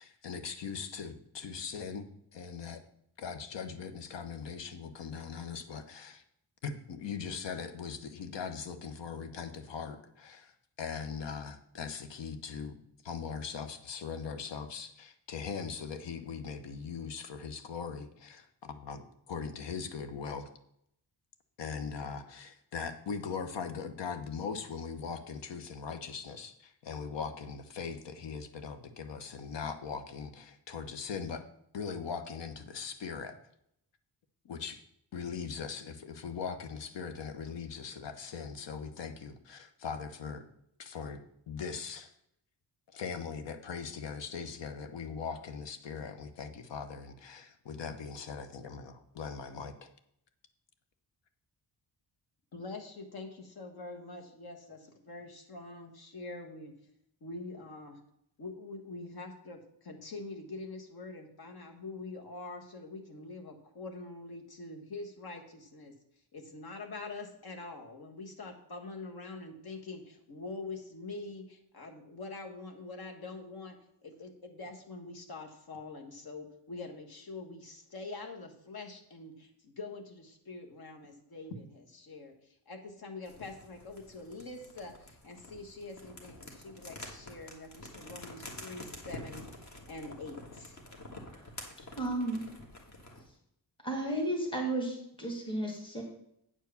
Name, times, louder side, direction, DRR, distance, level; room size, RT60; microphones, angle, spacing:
voice 1, 0.0-2.1 2.3-2.8 3.2-6.2 6.6-12.8 13.0-19.0 19.3-20.5 21.6-31.4 31.7-33.4 34.4-34.8 35.1-40.4 40.8-41.2 41.5-42.1 42.9-49.9, left 6 dB, 80° left, 9 dB, 1.0 m, -40 dB
voice 2, 52.5-56.7 57.2-58.0 58.4-65.9 66.3-90.8, left 3 dB, 60° left, 3 dB, 1.5 m, -45 dB
sound 1, 83.2-93.3, left 1 dB, 40° left, 1.7 m, -48 dB
voice 3, 92.0-92.4 93.8-96.0, right 1 dB, 10° left, 0 dB, 1.7 m, -33 dB
8.9 x 4.7 x 7.0 m, 0.74 s
wide cardioid pair, 160°, 42 cm